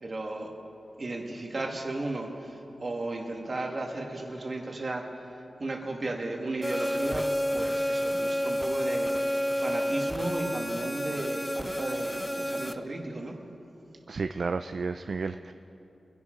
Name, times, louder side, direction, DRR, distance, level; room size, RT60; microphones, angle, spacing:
voice 1, 0.0-0.5 1.0-7.2 7.5-13.4, right 2 dB, 40° right, 1 dB, 1.8 m, -35 dB
sound 1, 6.6-12.7, equal, 5° left, 0.5 m, -30 dB
voice 2, 14.1-15.5, right 4 dB, 60° right, 9 dB, 0.3 m, -32 dB
23.5 x 10.5 x 3.8 m, 2.9 s
wide cardioid pair, 105°, 0 cm